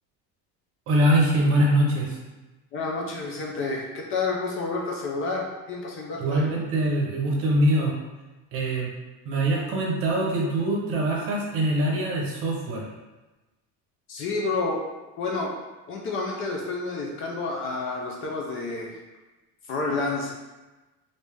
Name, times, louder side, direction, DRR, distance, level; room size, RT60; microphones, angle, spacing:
voice 1, 0.9-2.2 6.2-7.9 8.5-8.9 9.2-12.8, right 1 dB, 40° right, -2 dB, 0.8 m, -23 dB
voice 2, 2.7-6.5 14.1-14.8 15.2-15.5 15.9-19.0 19.7-20.3, left 3 dB, 40° left, -1 dB, 0.5 m, -29 dB
3.2 x 2.6 x 3.3 m, 1.1 s
cardioid pair, 165°, 34 cm